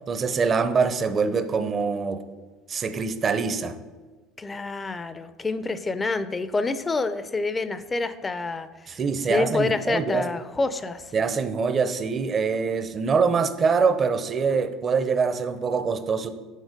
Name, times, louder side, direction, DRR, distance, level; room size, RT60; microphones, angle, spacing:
voice 1, 0.1-2.2 2.7-3.7 8.9-10.3 11.1-16.3, right 5 dB, 35° right, 11 dB, 0.6 m, -24 dB
voice 2, 4.4-8.9 9.3-11.0, left 3 dB, 20° left, 13 dB, 0.5 m, -27 dB
6.4 x 4.4 x 5.2 m, 1.3 s
supercardioid pair, 85°, 0 cm